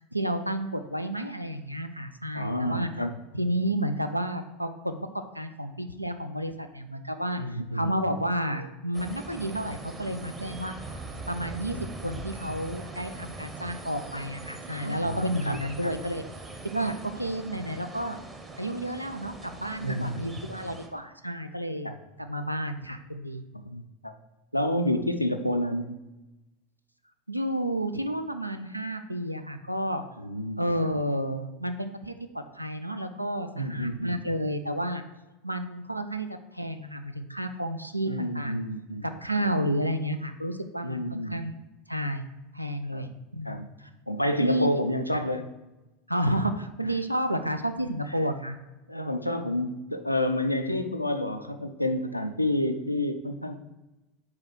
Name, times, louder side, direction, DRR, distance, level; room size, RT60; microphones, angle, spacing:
voice 1, 0.1-2.9 3.3-10.7 11.3-16.2 16.6-18.2 18.6-21.9 22.2-23.4 27.3-30.0 30.6-32.1 32.5-35.0 35.4-36.3 36.5-38.6 39.0-41.5 41.9-42.2 42.5-43.9 44.3-44.7 45.1-45.2 46.1-48.6, right 1 dB, 90° right, 7 dB, 0.4 m, -31 dB
voice 2, 2.3-3.2 7.4-7.9 14.7-15.6 15.8-15.9 19.8-20.2 21.8-21.9 23.7-23.8 24.5-26.0 30.2-30.9 33.6-34.2 38.1-39.1 39.4-39.5 40.8-41.4 42.9-43.1 43.4-43.7 44.1-45.5 48.9-53.6, left 1 dB, 90° left, 7 dB, 0.4 m, -29 dB
sound 1, 8.9-20.9, right 2 dB, 15° right, 0.8 m, -42 dB
4.8 x 4.8 x 4.6 m, 1.0 s
figure-of-eight pair, 80°, 0 cm